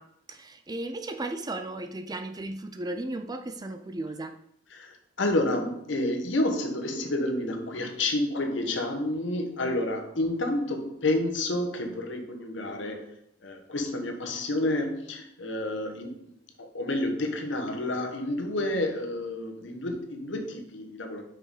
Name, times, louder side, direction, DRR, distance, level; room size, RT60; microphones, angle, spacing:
voice 1, 0.0-4.4, right 2 dB, 20° right, 0.5 m, -35 dB
voice 2, 4.7-13.1 13.4-16.2 16.6-21.2, left 1 dB, 80° left, 1.2 m, -29 dB
5.9 x 5.3 x 5.0 m
head